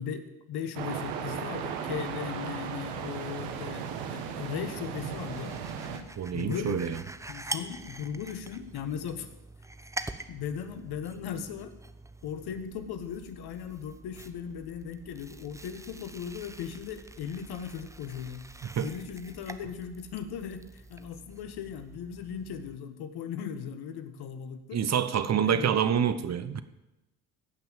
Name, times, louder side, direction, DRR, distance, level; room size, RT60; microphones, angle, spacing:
voice 1, 0.0-5.6 6.3-7.0 7.3-9.3 10.3-11.8 12.2-18.5 18.8-24.8 25.4-25.7, left 8 dB, 55° left, 10 dB, 1.4 m, -38 dB
sound 1, 0.7-6.0, right 7 dB, 75° right, 1.5 m, -36 dB
sound 2, 4.9-22.8, right 2 dB, 5° right, 0.9 m, -45 dB
voice 2, 6.2-7.0 18.8-18.9 24.7-26.6, right 8 dB, 35° right, 12 dB, 1.1 m, -27 dB
16.0 x 5.9 x 7.4 m, 0.97 s
hypercardioid pair, 65°, 45 cm